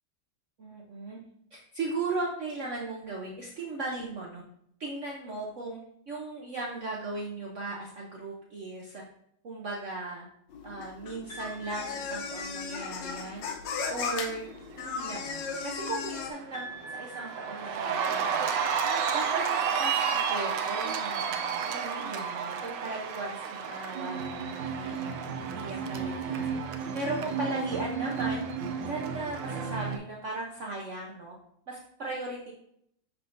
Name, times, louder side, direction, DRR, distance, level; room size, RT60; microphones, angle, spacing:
voice 1, 0.6-1.2 1.5-4.4 4.8-9.0 9.4-10.3 10.6-13.5 13.9-14.4 14.8-18.5 19.1-25.1 25.4-26.6 26.9-28.4 28.8-31.4 31.7-32.5, right 2 dB, 55° right, -2 dB, 0.8 m, -37 dB
sound 1, 10.5-16.3, left 5 dB, 90° left, 1.4 m, -36 dB
sound 2, 11.3-12.9 16.5-18.6, right 2 dB, 50° left, 3.2 m, -45 dB
Cheering, 15.1-15.5 15.9-30.0, right 6 dB, 75° right, 1.2 m, -31 dB
10.5 x 3.6 x 2.6 m, 0.73 s
omnidirectional pair, 2.0 m